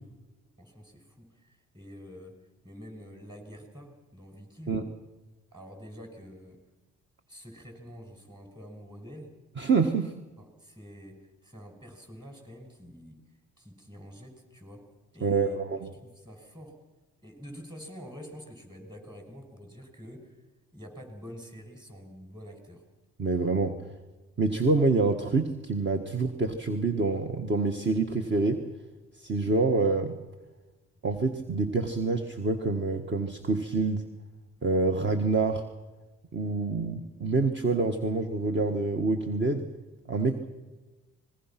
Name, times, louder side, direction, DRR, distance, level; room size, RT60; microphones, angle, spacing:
voice 1, 0.6-2.3 2.6-4.8 5.5-6.6 7.3-9.3 10.4-13.2 13.6-14.9 15.1-15.6 15.9-16.8 17.2-20.4 20.7-22.8 40.2-40.4, equal, 15° right, 4 dB, 6.4 m, -47 dB
voice 2, 9.6-10.1 15.2-15.9 23.2-23.8 24.4-28.6 29.1-30.2 31.0-34.1 34.6-35.7 36.3-39.7 40.1-40.3, right 3 dB, 40° right, 6 dB, 1.6 m, -26 dB
25.5 x 21.0 x 6.0 m, 1.2 s
cardioid pair, 90°, 30 cm